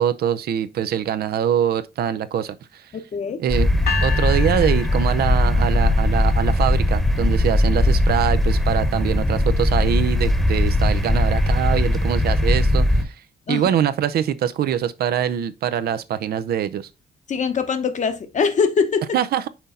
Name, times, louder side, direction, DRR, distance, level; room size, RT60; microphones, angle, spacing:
voice 1, 0.0-2.8 3.4-3.7 4.0-13.1 13.5-16.9 19.1-19.5, right 9 dB, 80° right, 0.6 m, -23 dB
voice 2, 2.9-3.4 13.5-13.7 17.3-19.1, left 5 dB, 50° left, 1.0 m, -22 dB
sound 1, 3.5-13.0, left 1 dB, ahead, 1.0 m, -19 dB
sound 2, 3.9-6.0, left 6 dB, 85° left, 1.4 m, -30 dB
6.1 x 4.1 x 3.7 m
cardioid pair, 115°, 16 cm